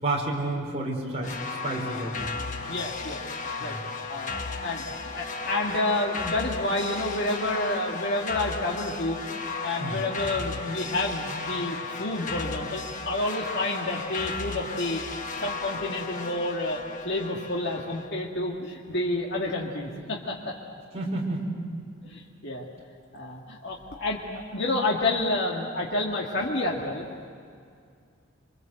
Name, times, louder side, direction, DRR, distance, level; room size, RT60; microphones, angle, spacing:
voice 1, 0.0-1.3 1.6-2.3 3.6-3.8 9.8-10.0 20.9-21.4, right 2 dB, 30° right, -1 dB, 4.8 m, -30 dB
sound 1, 1.2-18.1, left 4 dB, 40° left, 1.3 m, -35 dB
voice 2, 2.7-3.2 3.6-3.7 4.1-9.2 9.6-15.0 15.4-20.5 22.0-22.7 23.1-27.1, left 2 dB, 55° left, -2 dB, 2.2 m, -29 dB
27.5 x 24.5 x 8.0 m, 2.2 s
head